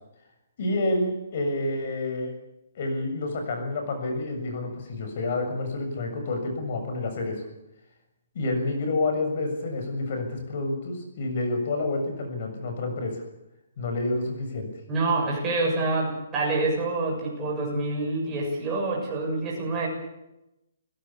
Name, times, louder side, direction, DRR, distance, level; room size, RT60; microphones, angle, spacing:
voice 1, 0.6-2.3 2.8-7.4 8.3-13.2 13.8-14.7, left 2 dB, 40° left, 5 dB, 7.0 m, -29 dB
voice 2, 14.9-19.9, right 2 dB, 10° right, -3 dB, 7.0 m, -27 dB
29.0 x 17.0 x 7.3 m, 0.89 s
hypercardioid pair, 180°, 0 cm